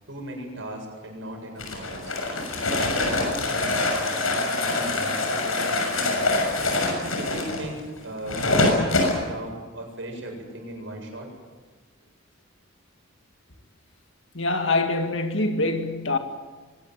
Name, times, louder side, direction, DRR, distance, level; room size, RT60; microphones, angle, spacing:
voice 1, 0.1-2.1 2.7-6.6 7.1-11.3, right 1 dB, 65° right, 7.6 m, -37 dB
sound 1, 1.6-9.2, left 2 dB, 85° left, 6.6 m, -25 dB
voice 2, 14.3-16.2, left 2 dB, 65° left, 2.3 m, -24 dB
24.0 x 19.0 x 9.2 m
head